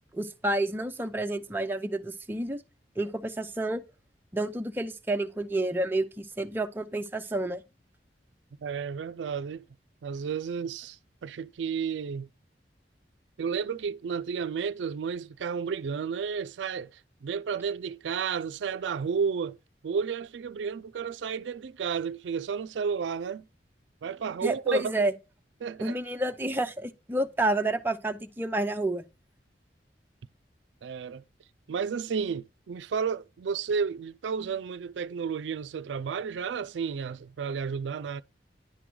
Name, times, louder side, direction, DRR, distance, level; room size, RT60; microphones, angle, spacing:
voice 1, 0.1-2.6 3.0-3.8 4.3-7.6 24.4-25.1 25.8-29.0, right 1 dB, 10° right, 0.6 m, -29 dB
voice 2, 8.6-9.6 10.0-12.3 13.4-19.6 19.8-23.4 24.0-25.1 25.6-26.0 30.8-31.2 31.7-38.2, right 6 dB, 90° right, 0.4 m, -32 dB
10.0 x 3.8 x 4.6 m
head